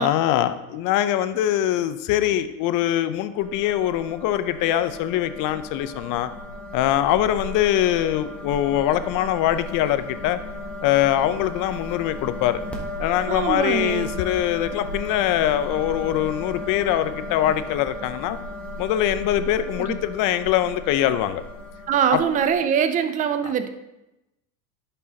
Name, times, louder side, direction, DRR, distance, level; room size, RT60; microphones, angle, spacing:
voice 1, 0.0-6.3 6.7-10.4 10.8-12.6 13.0-18.4 18.8-21.4 22.1-22.2 23.4-23.5, left 12 dB, 45° left, 12 dB, 0.6 m, -23 dB
sound 1, 3.4-22.6, left 1 dB, 5° left, 1.2 m, -35 dB
voice 2, 13.3-14.2 19.8-19.9 21.9-23.7, right 8 dB, 20° right, 9 dB, 0.3 m, -23 dB
11.0 x 5.5 x 2.8 m, 0.94 s
supercardioid pair, 115°, 46 cm